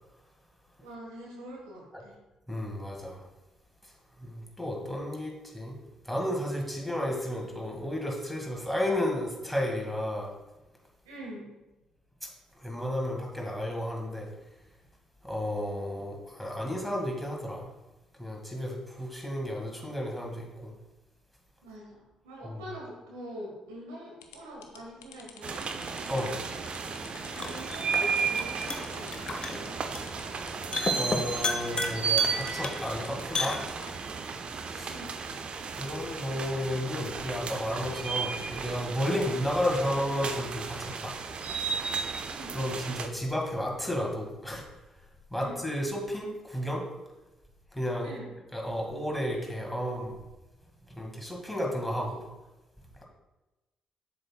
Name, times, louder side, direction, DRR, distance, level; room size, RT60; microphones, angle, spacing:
voice 1, 0.8-2.2 11.0-11.4 21.6-25.6 27.3-29.7 34.8-35.2 42.3-42.6 45.4-45.6 48.0-48.3, equal, 80° right, -3 dB, 1.4 m, -44 dB
voice 2, 2.5-3.2 4.2-5.8 6.0-10.3 12.6-14.3 15.2-17.7 18.2-20.7 22.4-22.6 26.1-26.3 31.0-33.6 34.7-34.9 35.8-41.1 41.6-41.7 42.5-44.6 45.3-46.8 47.7-48.1 48.5-50.1 50.9-52.3, equal, 5° left, 0 dB, 1.8 m, -32 dB
sound 1, 24.2-33.9, left 8 dB, 85° left, 0.4 m, -51 dB
sound 2, 25.4-43.1, right 5 dB, 50° right, 0.5 m, -34 dB
sound 3, 26.1-34.1, left 3 dB, 35° left, 0.7 m, -36 dB
7.4 x 6.2 x 2.2 m, 1.1 s
hypercardioid pair, 40°, 2 cm